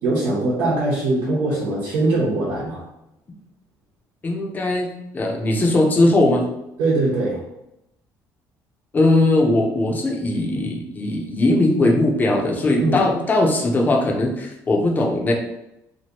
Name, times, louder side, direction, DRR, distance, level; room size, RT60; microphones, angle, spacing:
voice 1, 0.0-2.8 6.8-7.4 12.8-13.1, right 2 dB, 85° right, -6 dB, 1.0 m, -21 dB
voice 2, 4.2-6.5 8.9-15.3, left 2 dB, 25° left, 1 dB, 0.6 m, -19 dB
2.9 x 2.6 x 2.9 m, 0.86 s
cardioid pair, 135°, 7 cm